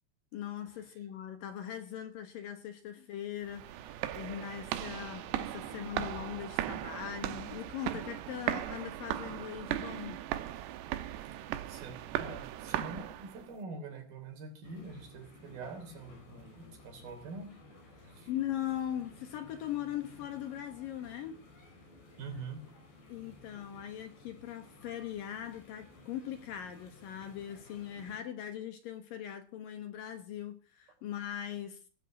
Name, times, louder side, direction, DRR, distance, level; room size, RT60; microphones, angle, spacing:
voice 1, 0.3-10.2 18.3-21.4 23.1-31.9, left 10 dB, 65° left, 2.6 m, -40 dB
sound 1, 3.5-13.5, right 13 dB, 80° right, 3.1 m, -38 dB
voice 2, 11.2-17.6 18.0-18.3 22.2-22.6, right 3 dB, 60° right, 5.0 m, -45 dB
sound 2, 14.6-28.2, left 2 dB, 90° left, 7.2 m, -56 dB
18.5 x 8.3 x 8.2 m
omnidirectional pair, 4.8 m